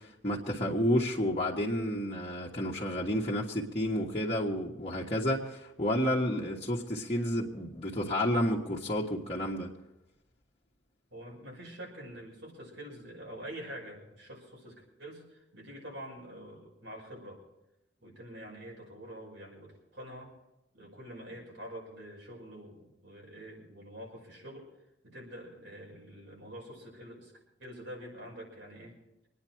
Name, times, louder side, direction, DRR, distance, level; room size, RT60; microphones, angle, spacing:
voice 1, 0.0-9.7, equal, 30° left, -7 dB, 1.5 m, -30 dB
voice 2, 11.1-17.4 18.0-20.3 20.7-24.7 25.0-27.3 27.6-29.0, equal, 85° right, -1 dB, 5.8 m, -46 dB
25.0 x 9.7 x 4.5 m, 0.92 s
head